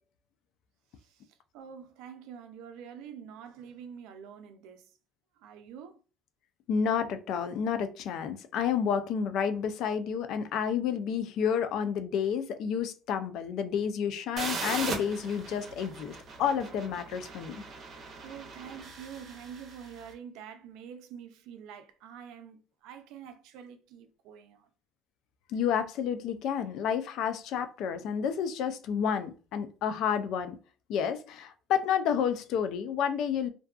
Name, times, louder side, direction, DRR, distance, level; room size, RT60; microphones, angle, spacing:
voice 1, 1.0-4.9 5.4-6.0 18.2-24.7, right 8 dB, 85° right, 0.4 m, -46 dB
voice 2, 6.7-17.6 25.5-30.6 30.9-33.5, left 7 dB, 70° left, 0.3 m, -30 dB
sound 1, 14.4-20.0, right 4 dB, 50° right, 0.7 m, -39 dB
2.5 x 2.2 x 2.3 m
cardioid pair, 100°, 0 cm